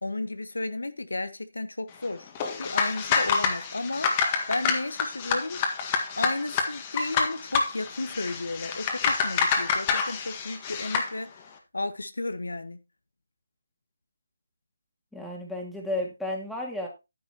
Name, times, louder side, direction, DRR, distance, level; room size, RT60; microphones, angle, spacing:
voice 1, 0.0-2.3 2.6-5.6 6.2-11.4 11.7-12.8, left 2 dB, 90° left, 1.2 m, -33 dB
sound 1, 2.3-11.1, left 5 dB, 25° left, 1.7 m, -27 dB
voice 2, 15.1-16.9, left 1 dB, ahead, 2.3 m, -32 dB
10.0 x 10.0 x 2.9 m
figure-of-eight pair, 160°, 0 cm